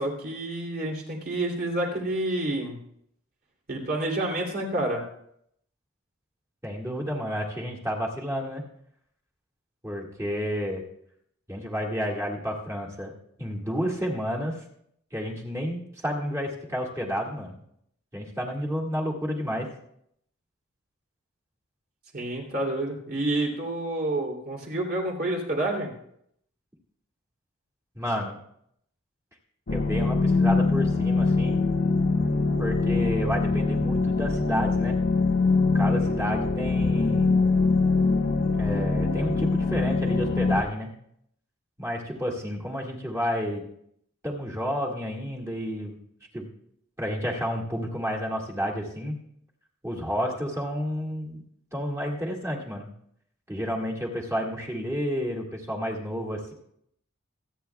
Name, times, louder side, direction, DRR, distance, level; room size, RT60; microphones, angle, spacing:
voice 1, 0.0-2.8 3.7-5.0 22.1-25.9, right 1 dB, 50° right, -1 dB, 2.9 m, -29 dB
voice 2, 6.6-8.6 9.8-10.8 11.5-13.1 13.4-14.5 15.1-17.6 18.1-19.7 27.9-28.4 29.7-31.6 32.6-35.0 35.7-37.4 38.5-40.9 41.8-43.6 44.2-46.0 46.3-46.5 47.0-49.2 49.8-51.4 51.7-52.9 53.5-56.5, equal, 15° right, -1 dB, 2.0 m, -30 dB
sound 1, 29.7-40.6, left 3 dB, 50° left, 1.0 m, -23 dB
26.5 x 9.0 x 2.3 m, 0.71 s
head